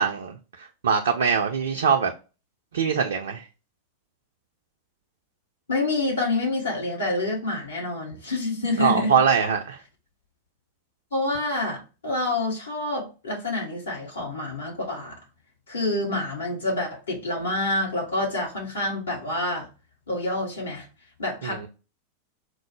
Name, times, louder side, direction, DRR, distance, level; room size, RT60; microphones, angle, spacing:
voice 1, 0.0-2.1 2.7-3.5 8.8-9.8 21.4-21.7, right 6 dB, 65° right, 0.4 m, -23 dB
voice 2, 5.7-9.1 11.1-15.2 15.7-19.7 20.1-20.9 21.2-21.7, left 2 dB, 70° left, 1.4 m, -27 dB
4.4 x 2.0 x 3.1 m
figure-of-eight pair, 90°, 0 cm